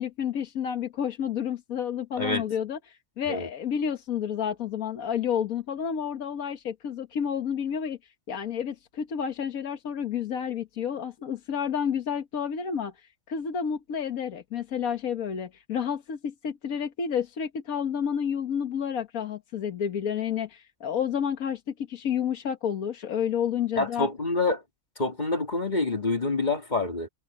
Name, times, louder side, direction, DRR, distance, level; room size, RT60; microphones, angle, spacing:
voice 1, 0.0-8.0 8.3-12.9 13.3-24.1, left 8 dB, 85° left, 1.7 m, -30 dB
voice 2, 23.8-24.6 25.0-27.1, left 3 dB, 30° left, 2.5 m, -27 dB
omnidirectional pair, 1.5 m